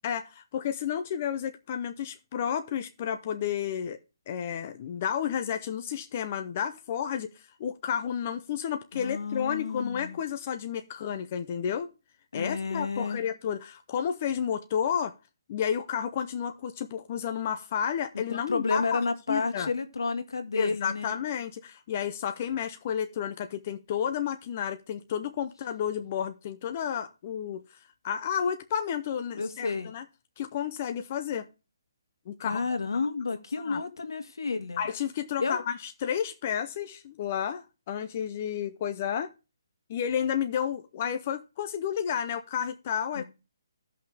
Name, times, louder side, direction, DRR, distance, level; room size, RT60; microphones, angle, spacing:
voice 1, 0.0-4.0 4.3-7.3 7.6-11.9 12.3-15.1 15.5-19.0 19.3-19.7 20.5-27.6 28.0-30.0 30.4-31.5 32.3-32.6 33.7-33.8 34.8-39.3 39.9-43.2, left 8 dB, 25° left, 0.5 m, -31 dB
voice 2, 8.9-10.2 12.3-13.2 18.3-21.1 29.3-29.9 32.4-34.9 35.4-35.6 43.1-43.2, left 4 dB, 80° left, 1.6 m, -31 dB
15.0 x 5.6 x 3.3 m
hypercardioid pair, 175°, 2 cm